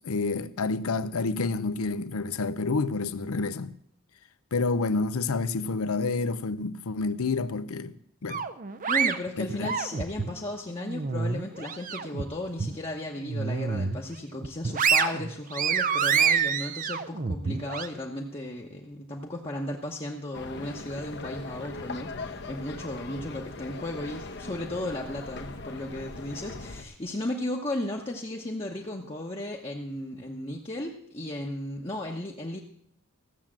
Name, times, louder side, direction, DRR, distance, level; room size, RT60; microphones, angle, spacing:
voice 1, 0.0-3.7 4.5-7.9 8.2-8.4 9.4-9.7, left 3 dB, 85° left, 0.6 m, -29 dB
sound 1, 8.3-10.3 10.8-12.2 12.6-12.8 13.2-14.0 14.4-17.9, right 6 dB, 40° right, 0.5 m, -27 dB
voice 2, 8.9-32.6, left 1 dB, 25° left, 1.0 m, -35 dB
sound 2, 20.3-26.8, left 3 dB, 50° left, 0.9 m, -40 dB
15.0 x 7.4 x 7.4 m
head